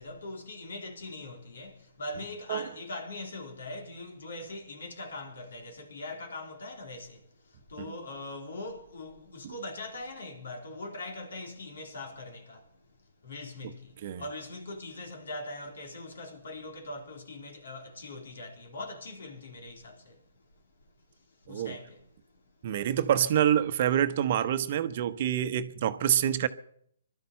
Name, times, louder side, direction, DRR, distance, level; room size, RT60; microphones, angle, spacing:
voice 1, 0.0-12.9 13.2-20.3 21.4-22.1, left 2 dB, 65° left, 3.8 m, -41 dB
voice 2, 22.6-26.5, right 10 dB, 45° right, 1.0 m, -27 dB
20.0 x 12.5 x 5.7 m
figure-of-eight pair, 135°, 0 cm